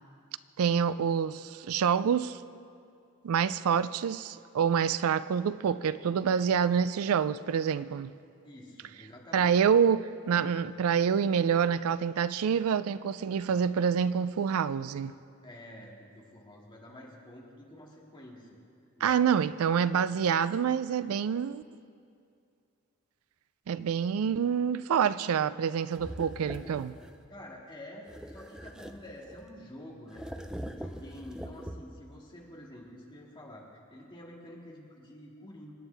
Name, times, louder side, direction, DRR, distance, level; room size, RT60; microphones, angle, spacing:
voice 1, 0.6-2.4 3.2-8.1 9.3-15.1 19.0-21.6 23.7-26.9, right 7 dB, 75° right, 0.4 m, -27 dB
voice 2, 8.4-9.5 15.4-18.5 19.0-19.2 27.3-30.3 30.6-35.7, left 1 dB, 20° left, 2.0 m, -48 dB
sound 1, 25.9-27.3 28.0-29.6 30.1-32.1, equal, 5° right, 0.4 m, -43 dB
27.0 x 9.2 x 3.4 m
head